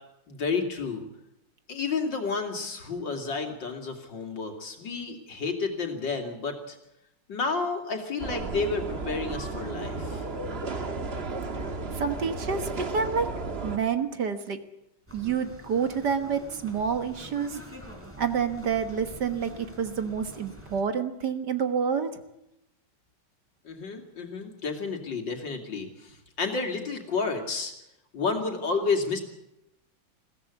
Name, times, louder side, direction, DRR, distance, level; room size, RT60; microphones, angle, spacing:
voice 1, 0.3-1.0 1.7-6.8 7.3-10.2 23.6-27.7 28.1-29.2, left 4 dB, 65° left, 3 dB, 3.2 m, -31 dB
sound 1, 8.2-13.8, right 3 dB, 35° right, 1.4 m, -33 dB
voice 2, 11.9-13.3 13.6-14.6 15.1-17.6 18.2-22.1, right 6 dB, 60° right, 8 dB, 1.8 m, -28 dB
sound 2, 15.1-20.8, right 1 dB, 5° right, 3.8 m, -45 dB
21.5 x 16.5 x 8.3 m, 0.84 s
omnidirectional pair, 2.2 m